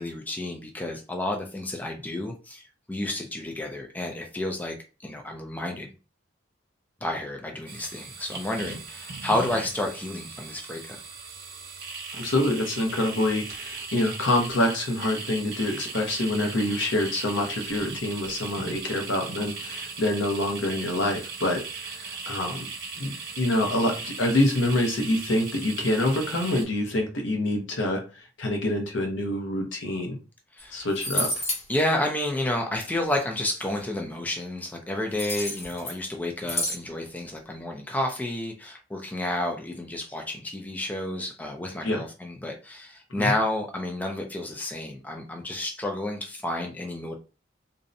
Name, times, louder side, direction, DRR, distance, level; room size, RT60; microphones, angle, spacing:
voice 1, 0.0-2.6 2.9-4.7 5.0-5.9 7.0-11.0 30.6-30.9 31.7-47.2, left 1 dB, 10° left, 2 dB, 0.3 m, -30 dB
sound 1, 7.7-26.6, right 4 dB, 55° right, 0.9 m, -38 dB
voice 2, 12.1-22.7 23.0-28.0 28.4-30.2 30.7-31.3 41.8-42.0 43.2-43.3, left 1 dB, 70° left, 2 dB, 0.7 m, -26 dB
sound 2, 30.6-30.7 30.9-31.6 35.1-36.0 36.5-36.8, left 1 dB, 35° left, 0.9 m, -29 dB
2.6 x 2.0 x 2.5 m, 0.32 s
head